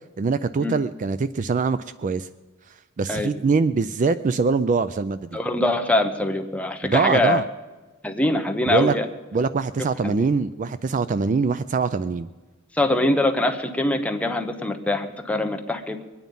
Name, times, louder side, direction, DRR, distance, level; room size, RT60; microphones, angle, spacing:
voice 1, 0.2-2.3 3.0-5.4 6.8-7.4 8.7-9.0 9.3-12.3, right 4 dB, 35° right, 13 dB, 0.3 m, -23 dB
voice 2, 5.3-7.4 8.0-9.1 10.0-10.3 12.7-16.0, left 1 dB, 5° left, 4 dB, 0.9 m, -23 dB
22.5 x 9.3 x 5.4 m, 1.3 s
head